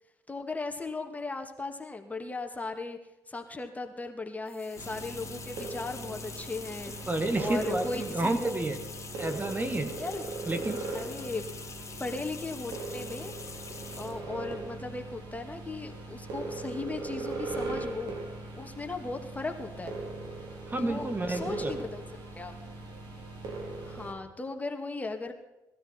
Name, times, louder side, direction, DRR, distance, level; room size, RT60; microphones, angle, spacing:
voice 1, 0.3-3.0 3.3-6.9 7.4-8.6 10.0-10.2 10.9-11.4 12.0-13.3 14.0-18.2 18.6-20.0 20.8-22.0 22.3-22.5 23.8-25.3, left 3 dB, 20° left, 4 dB, 2.1 m, -37 dB
sound 1, 4.5-14.2, left 5 dB, 40° left, 2.2 m, -45 dB
sound 2, 4.8-24.1, right 3 dB, 70° right, 3.4 m, -39 dB
voice 2, 7.1-8.8 9.2-9.9 10.5-10.9 20.7-21.7, right 2 dB, 25° right, 7 dB, 1.5 m, -30 dB
19.0 x 13.0 x 4.4 m, 0.99 s
hypercardioid pair, 55°, 8 cm